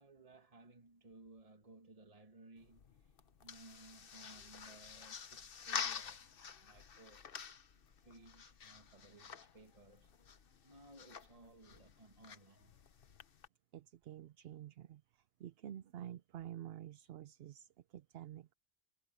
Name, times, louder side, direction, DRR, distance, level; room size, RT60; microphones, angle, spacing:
voice 1, 0.0-6.3 6.6-7.3 8.0-10.1 10.6-12.8, right 2 dB, 30° right, 2.0 m, -60 dB
sound 1, 2.6-13.5, left 7 dB, 55° left, 1.0 m, -48 dB
voice 2, 13.7-18.5, right 11 dB, 65° right, 0.7 m, -50 dB
omnidirectional pair, 1.2 m